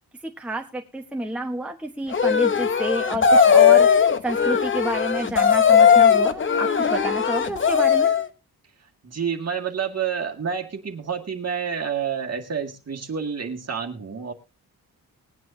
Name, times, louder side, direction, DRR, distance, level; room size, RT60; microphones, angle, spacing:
voice 1, 0.2-8.1, equal, 5° right, 2 dB, 1.1 m, -29 dB
sound 1, 2.1-8.3, left 7 dB, 30° left, 0.8 m, -18 dB
voice 2, 9.0-14.3, right 7 dB, 40° right, 2 dB, 2.0 m, -29 dB
21.0 x 9.4 x 2.7 m, 0.27 s
wide cardioid pair, 150°, 38 cm